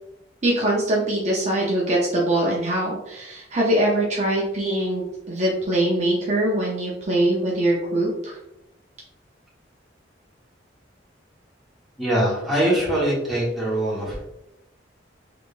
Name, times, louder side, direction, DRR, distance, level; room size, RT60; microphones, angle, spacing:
voice 1, 0.4-8.4, right 1 dB, 40° right, -4 dB, 0.6 m, -23 dB
voice 2, 12.0-14.2, right 1 dB, ahead, -8 dB, 1.3 m, -23 dB
3.5 x 3.3 x 2.5 m, 0.86 s
head